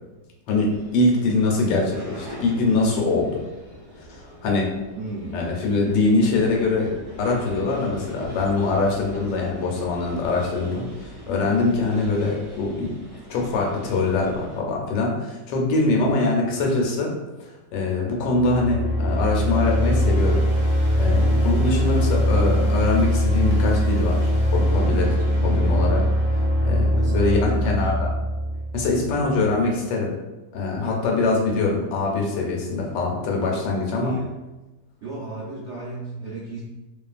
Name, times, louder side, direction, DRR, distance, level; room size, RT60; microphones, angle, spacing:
voice 1, 0.5-3.4 4.0-4.7 5.3-12.9 13.3-17.1 17.4-20.7 20.9-26.0 26.3-28.1 28.7-30.1 30.5-34.2, left 3 dB, 80° left, -1 dB, 1.2 m, -23 dB
sound 1, 0.7-14.6, equal, 20° right, 0.4 m, -42 dB
voice 2, 5.0-5.4 15.9-16.1 26.9-27.9 33.9-34.3 35.0-36.6, right 2 dB, 75° right, -8 dB, 0.6 m, -34 dB
sound 2, 18.3-29.3, equal, 15° left, 0.8 m, -21 dB
2.7 x 2.4 x 2.3 m, 1.1 s
omnidirectional pair, 1.9 m